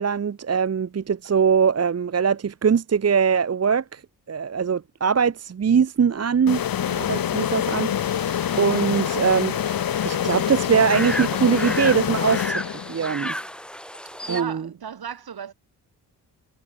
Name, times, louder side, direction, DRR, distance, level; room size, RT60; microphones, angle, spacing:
voice 1, 0.0-4.0 4.3-13.3 14.3-14.7, right 6 dB, 35° right, 0.9 m, -22 dB
sound 1, 6.5-13.1, left 10 dB, 55° left, 1.0 m, -26 dB
sound 2, 8.3-14.4, equal, ahead, 1.6 m, -34 dB
voice 2, 14.3-15.5, right 8 dB, 65° right, 3.9 m, -35 dB
cardioid pair, 60°, 41 cm